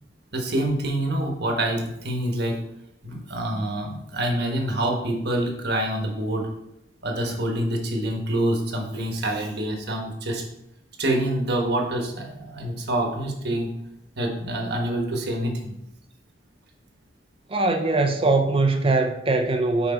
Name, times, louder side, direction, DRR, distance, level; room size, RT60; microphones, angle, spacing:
voice 1, 0.3-2.6 3.0-6.5 7.0-10.4 11.0-13.7 14.2-15.7, right 1 dB, 60° right, 1.3 m, -26 dB
voice 2, 17.5-19.9, right 3 dB, 30° right, 0.5 m, -21 dB
6.1 x 4.9 x 4.3 m
head